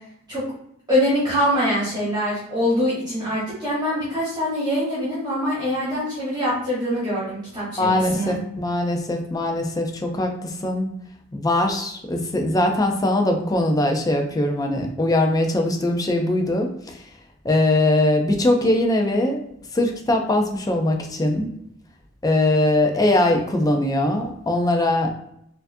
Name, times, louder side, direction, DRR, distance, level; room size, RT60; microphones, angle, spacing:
voice 1, 0.9-8.4, equal, 20° right, -9 dB, 1.2 m, -24 dB
voice 2, 7.8-10.9 11.3-17.0 17.4-19.4 19.7-21.5 22.2-25.1, left 1 dB, 15° left, 2 dB, 0.5 m, -21 dB
4.4 x 2.5 x 2.6 m, 0.73 s
head